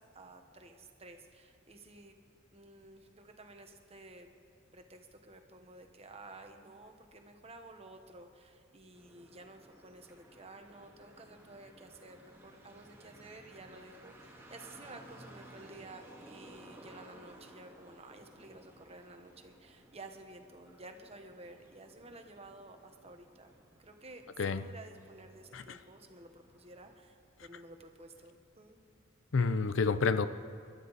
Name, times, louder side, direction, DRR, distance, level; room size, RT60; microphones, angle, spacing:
voice 1, 0.0-2.1 2.5-4.3 4.7-23.5 23.8-24.2 24.6-28.8, right 2 dB, 30° right, 5 dB, 1.2 m, -53 dB
sound 1, 8.9-27.0, right 1 dB, 10° right, 1.8 m, -57 dB
voice 2, 29.3-30.3, left 4 dB, 75° left, 12 dB, 0.6 m, -29 dB
27.5 x 12.0 x 4.1 m, 2.3 s
head